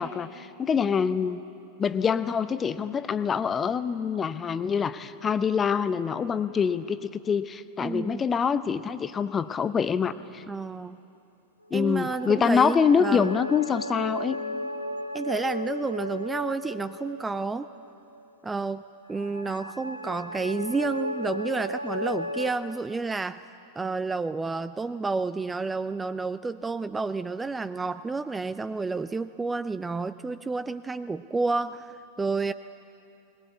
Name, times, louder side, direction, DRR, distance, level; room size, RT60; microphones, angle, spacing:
voice 1, 0.0-1.4 1.8-10.4 11.7-14.4, left 6 dB, 20° left, 14 dB, 0.7 m, -25 dB
voice 2, 7.8-8.2 10.5-11.0 11.7-13.3 15.1-17.7 18.4-18.8 19.1-23.4 23.8-32.5, right 3 dB, 10° right, 13 dB, 0.4 m, -30 dB
sound 1, 11.7-18.3 19.1-22.5, left 1 dB, 85° left, 0.8 m, -35 dB
21.0 x 20.5 x 8.1 m, 2.7 s
figure-of-eight pair, 90°, 0 cm